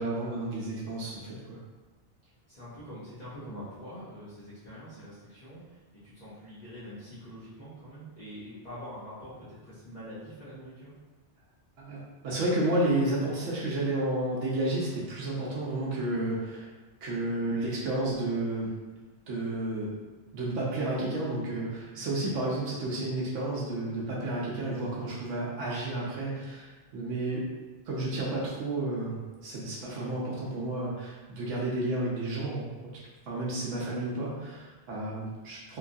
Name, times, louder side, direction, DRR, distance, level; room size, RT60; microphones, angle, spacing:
voice 1, 0.0-1.6 11.8-16.7 17.0-18.7 19.3-19.9 20.3-27.5 27.9-32.7 33.3-35.8, right 2 dB, 80° right, -6 dB, 1.0 m, -31 dB
voice 2, 2.5-10.9 22.2-22.4 27.1-27.4, equal, 40° left, -13 dB, 0.8 m, -45 dB
3.0 x 2.3 x 2.5 m, 1.3 s
omnidirectional pair, 1.2 m